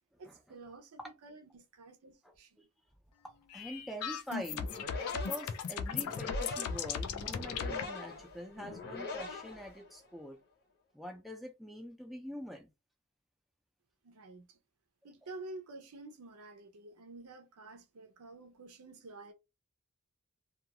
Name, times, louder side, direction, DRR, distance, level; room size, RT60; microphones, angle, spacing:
voice 1, 0.2-2.6 14.0-14.6 15.0-19.3, right 2 dB, 80° right, 0.6 m, -50 dB
voice 2, 2.2-2.6 3.2-4.7 5.2-10.4 10.9-12.7, equal, ahead, 0.5 m, -45 dB
sound 1, 3.5-7.8, left 6 dB, 75° left, 0.4 m, -37 dB
sound 2, 4.4-10.2, left 3 dB, 50° left, 0.8 m, -43 dB
2.4 x 2.3 x 2.8 m
head